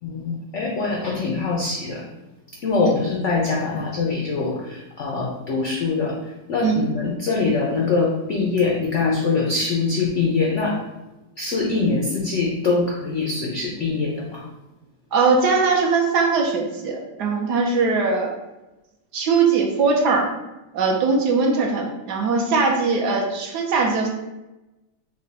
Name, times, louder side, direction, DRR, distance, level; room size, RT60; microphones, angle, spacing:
voice 1, 0.0-2.1 2.6-10.8 11.4-14.5, left 4 dB, 80° left, -1 dB, 0.6 m, -23 dB
voice 2, 15.1-18.3 19.1-20.3 20.7-24.1, right 4 dB, 70° right, 0 dB, 1.2 m, -20 dB
6.1 x 2.2 x 4.0 m, 1.0 s
omnidirectional pair, 2.0 m